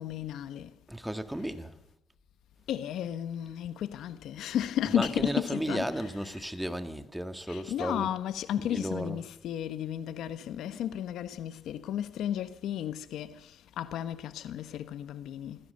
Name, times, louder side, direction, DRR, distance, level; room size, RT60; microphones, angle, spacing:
voice 1, 0.0-0.7 2.7-6.5 7.5-15.7, left 10 dB, 80° left, 1.3 m, -34 dB
voice 2, 0.9-1.7 5.0-8.1 8.7-9.2, right 1 dB, 5° right, 2.0 m, -34 dB
24.5 x 16.0 x 6.8 m
cardioid pair, 90°, 0 cm